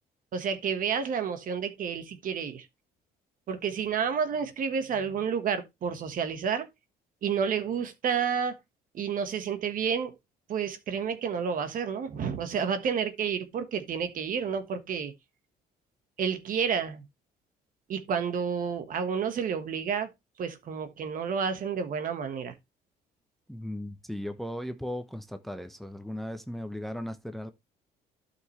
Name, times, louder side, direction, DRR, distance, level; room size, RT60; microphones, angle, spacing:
voice 1, 0.3-2.7 3.5-6.7 7.2-8.5 8.9-10.1 10.5-15.1 16.2-17.0 17.9-20.1 20.4-22.5, right 7 dB, 55° right, 1.4 m, -30 dB
voice 2, 23.5-27.5, left 1 dB, ahead, 0.9 m, -37 dB
12.0 x 5.9 x 3.2 m
cardioid pair, 110°, 17 cm